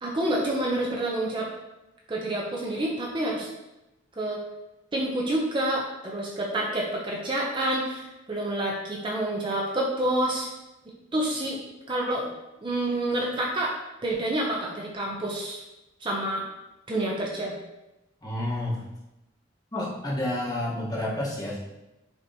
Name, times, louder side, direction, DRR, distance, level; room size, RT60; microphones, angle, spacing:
voice 1, 0.0-1.5 2.1-3.5 4.2-4.4 4.9-10.5 11.1-12.3 12.6-13.7 14.0-15.6 16.0-16.4 16.9-17.6, right 1 dB, 25° right, -2 dB, 0.5 m, -28 dB
voice 2, 18.2-18.8 19.7-21.6, left 1 dB, 20° left, -5 dB, 1.0 m, -29 dB
6.6 x 2.9 x 2.7 m, 0.95 s
head